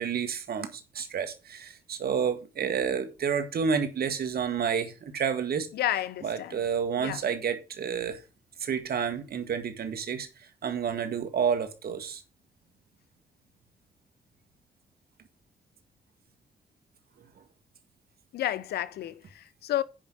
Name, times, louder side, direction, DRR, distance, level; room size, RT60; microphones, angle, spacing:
voice 1, 0.0-5.7 6.2-8.2 8.6-12.2, right 7 dB, 70° right, 1.8 m, -30 dB
voice 2, 5.7-6.6 7.0-7.2 18.3-19.8, left 12 dB, 90° left, 0.6 m, -31 dB
8.5 x 5.4 x 6.4 m
cardioid pair, 55°, 16 cm